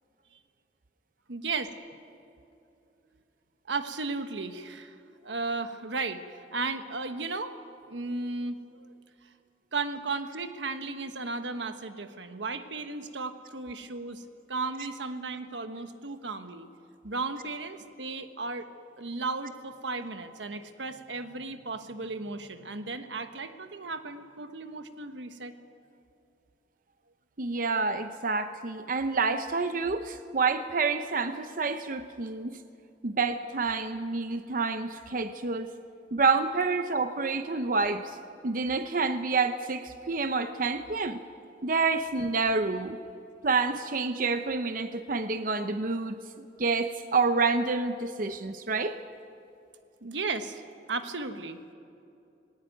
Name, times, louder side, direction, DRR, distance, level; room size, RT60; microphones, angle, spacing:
voice 1, 1.3-1.7 3.7-4.9 5.2-7.6 7.9-8.9 9.7-16.7 17.0-18.7 19.0-25.5 50.0-50.6 50.9-51.6, right 3 dB, 90° right, 8 dB, 1.3 m, -35 dB
voice 2, 27.4-32.6 33.0-35.7 36.1-38.2 38.4-41.2 41.6-43.0 43.4-46.2 46.6-49.0, right 4 dB, 50° right, 9 dB, 0.7 m, -28 dB
19.5 x 18.5 x 9.1 m, 2.6 s
head